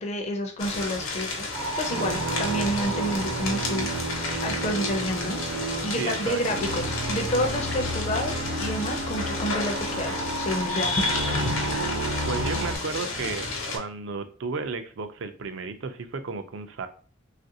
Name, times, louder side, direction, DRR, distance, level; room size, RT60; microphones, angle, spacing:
voice 1, 0.0-1.5 1.8-5.4 5.8-11.3, equal, 30° left, 2 dB, 0.4 m, -29 dB
sound 1, 0.6-13.8, left 3 dB, 75° left, 0.8 m, -32 dB
Enas (An aural character sketch), 1.5-12.8, right 1 dB, 85° right, 0.7 m, -31 dB
voice 2, 6.0-6.4 12.2-16.9, right 4 dB, 60° right, 9 dB, 0.4 m, -33 dB
3.2 x 2.5 x 2.7 m, 0.42 s
head